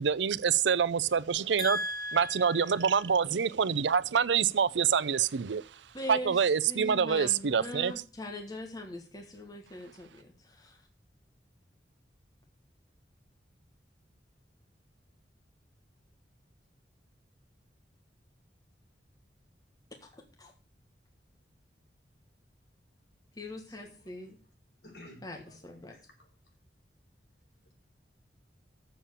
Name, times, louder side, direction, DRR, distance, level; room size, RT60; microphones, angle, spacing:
voice 1, 0.0-1.8 2.1-5.6 6.1-7.9, right 7 dB, 80° right, 0.5 m, -26 dB
voice 2, 1.6-3.0 5.9-6.4 6.7-10.8 20.0-20.1 20.4-20.5 23.4-24.4 25.2-25.9, left 1 dB, 20° left, 1.5 m, -40 dB
voice 3, 23.7-24.4 24.8-26.5 27.6-27.7, left 1 dB, 65° left, 5.1 m, -55 dB
7.5 x 7.1 x 8.3 m
head